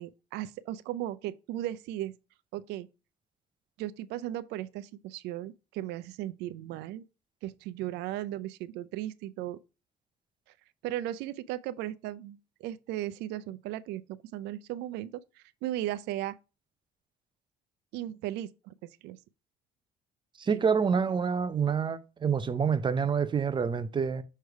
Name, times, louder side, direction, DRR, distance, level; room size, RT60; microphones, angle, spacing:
voice 1, 0.0-2.1 2.5-2.9 3.8-7.0 7.4-9.6 10.8-16.4 17.9-19.2 20.5-20.6, right 13 dB, 90° right, 0.4 m, -36 dB
voice 2, 20.4-24.2, right 6 dB, 30° right, 0.6 m, -27 dB
6.4 x 3.3 x 4.6 m
cardioid pair, 110°, 17 cm